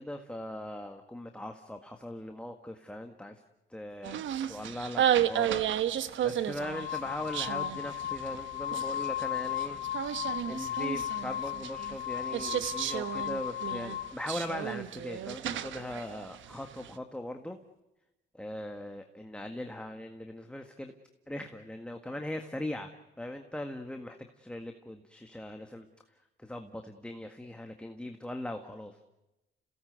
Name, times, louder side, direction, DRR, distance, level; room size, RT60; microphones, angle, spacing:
voice 1, 0.0-3.4 3.7-4.2 4.5-9.8 10.4-17.6 18.3-20.9 21.3-25.9 26.4-29.1, left 1 dB, 5° left, 5 dB, 1.7 m, -40 dB
sound 1, 4.0-16.9, right 10 dB, 75° right, 1.2 m, -33 dB
sound 2, 5.5-5.7 6.4-14.2, left 12 dB, 80° left, 2.0 m, -36 dB
29.0 x 17.5 x 8.1 m, 0.99 s
cardioid pair, 90°, 20 cm